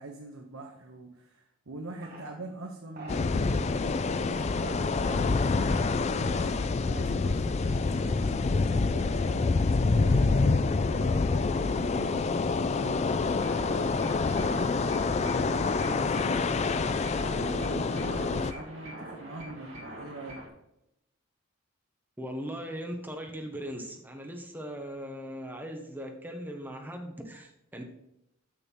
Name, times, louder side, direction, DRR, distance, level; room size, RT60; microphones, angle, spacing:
voice 1, 0.0-9.5 9.8-20.4, right 2 dB, 80° right, 0 dB, 1.2 m, -43 dB
sound 1, 2.0-2.3 2.9-3.2 4.1-4.5 5.0-5.3 5.7-6.0 6.4-6.9, right 2 dB, 45° right, 2.3 m, -47 dB
sound 2, 3.1-18.5, left 4 dB, 30° left, 0.3 m, -27 dB
sound 3, 13.4-20.5, right 1 dB, 65° right, 2.4 m, -44 dB
voice 2, 22.2-27.8, equal, 10° right, 2 dB, 1.2 m, -39 dB
7.1 x 6.8 x 5.5 m, 0.83 s
head